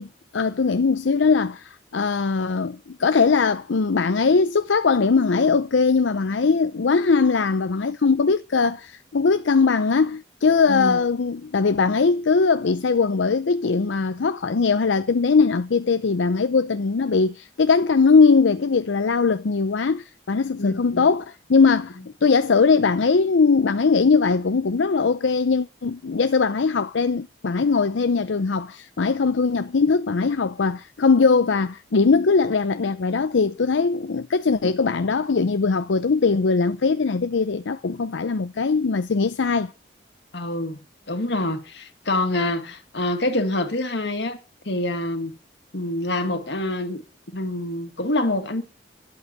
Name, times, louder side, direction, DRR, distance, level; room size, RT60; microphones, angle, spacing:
voice 1, 0.0-39.7, left 4 dB, 85° left, 0.6 m, -20 dB
voice 2, 10.7-11.0 20.6-21.1 40.3-40.8 41.1-44.4 44.7-45.3 45.7-47.0 47.3-48.6, left 1 dB, 70° left, 1.9 m, -26 dB
11.5 x 8.1 x 9.5 m
head